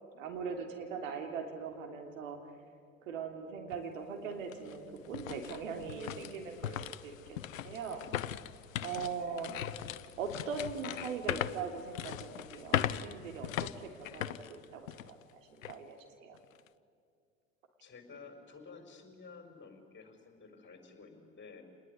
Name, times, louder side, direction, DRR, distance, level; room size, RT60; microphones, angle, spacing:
voice 1, 0.1-2.4 3.0-8.0 8.8-9.5 10.2-15.2 15.5-16.4, right 5 dB, 70° right, 4 dB, 3.3 m, -41 dB
sound 1, 3.7-3.8 4.3-15.2 15.6-15.8 16.3-16.7, left 11 dB, 80° left, 0.8 m, -39 dB
voice 2, 9.0-9.4 17.8-21.6, left 4 dB, 30° left, 5 dB, 5.3 m, -53 dB
27.0 x 20.5 x 10.0 m, 2.3 s
figure-of-eight pair, 70°, 39 cm